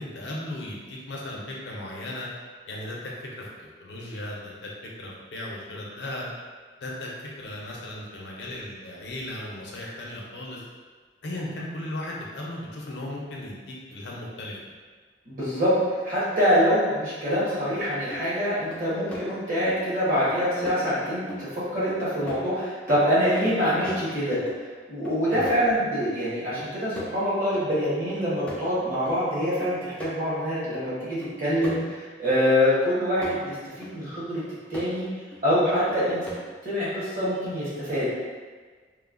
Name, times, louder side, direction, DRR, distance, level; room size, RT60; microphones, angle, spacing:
voice 1, 0.0-2.3 2.7-4.7 5.0-6.3 6.8-7.1 7.4-10.6 11.2-14.5 25.3-25.5, left 1 dB, 70° left, -3 dB, 0.5 m, -36 dB
voice 2, 15.3-24.4 24.9-34.4 34.7-35.0 35.4-36.2 36.6-38.1, equal, 50° right, -10 dB, 1.0 m, -25 dB
sound 1, 18.1-18.3 18.7-19.3 19.7-19.8 20.3-20.4 20.7-20.8 21.3-21.6 21.9-22.6 22.9-24.6 25.1-26.2 26.6-27.3 27.5-27.7 28.1-29.2 29.6-30.1 30.6-30.7 31.2-32.4 32.8-33.5 33.8-34.0 34.4-34.9 35.3-35.4 35.9-36.6, equal, 5° left, 0.3 m, -40 dB
3.0 x 2.1 x 2.4 m, 1.5 s
head